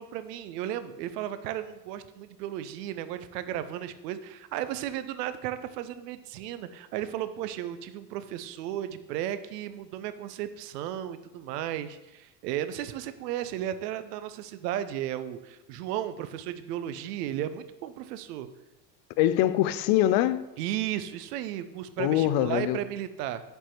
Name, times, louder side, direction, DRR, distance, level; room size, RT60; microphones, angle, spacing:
voice 1, 0.0-18.5 20.6-23.4, right 11 dB, 75° right, 0.6 m, -34 dB
voice 2, 19.2-20.4 22.0-22.8, left 13 dB, 55° left, 0.5 m, -23 dB
5.3 x 4.2 x 4.5 m
hypercardioid pair, 70°, 49 cm